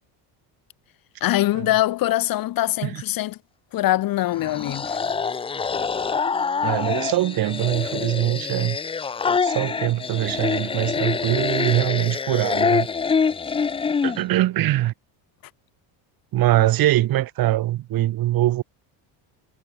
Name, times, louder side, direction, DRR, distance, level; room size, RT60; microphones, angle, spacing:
voice 1, 1.2-3.4 3.7-5.0, left 15 dB, 45° left, 0.7 m, -23 dB
sound 1, 4.3-14.2, left 5 dB, 15° left, 0.3 m, -25 dB
voice 2, 6.6-8.8 9.4-12.9 14.0-14.9 16.3-18.6, right 15 dB, 45° right, 0.9 m, -22 dB
cardioid pair, 115°, 49 cm